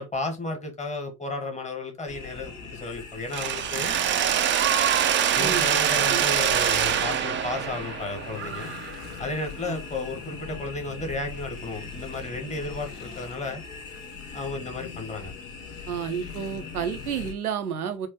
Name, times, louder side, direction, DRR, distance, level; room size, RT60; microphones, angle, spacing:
voice 1, 0.0-3.9 5.3-8.7 9.2-13.6 14.3-15.3, left 2 dB, 15° left, 1.5 m, -33 dB
sound 1, 2.1-17.3, left 6 dB, 60° left, 1.5 m, -40 dB
Mechanisms, 3.3-9.2, right 9 dB, 25° right, 0.5 m, -24 dB
voice 2, 15.9-18.1, right 8 dB, 80° right, 0.7 m, -30 dB
4.6 x 2.8 x 2.9 m
figure-of-eight pair, 65°, 44 cm